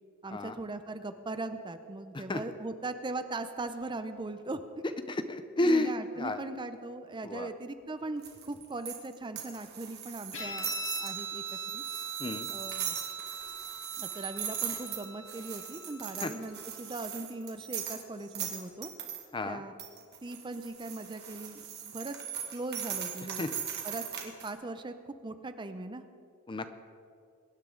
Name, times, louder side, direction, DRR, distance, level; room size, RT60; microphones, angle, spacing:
voice 1, 0.2-4.6 5.6-11.8 12.5-13.0 14.0-18.9 19.5-19.8 20.2-22.2 22.5-23.5 23.8-26.0, right 2 dB, 20° right, 10 dB, 0.6 m, -39 dB
voice 2, 5.1-5.9 6.2-6.4 7.2-7.5 12.2-12.5 16.2-16.3 19.3-19.6 23.4-23.5 26.5-26.7, left 2 dB, 20° left, 10 dB, 0.6 m, -30 dB
sound 1, 8.2-19.2 19.8-24.5, right 8 dB, 50° right, 1.8 m, -39 dB
Guitar, 10.3-17.2, right 4 dB, 65° left, 4.5 m, -41 dB
23.0 x 10.5 x 3.8 m, 2.4 s
head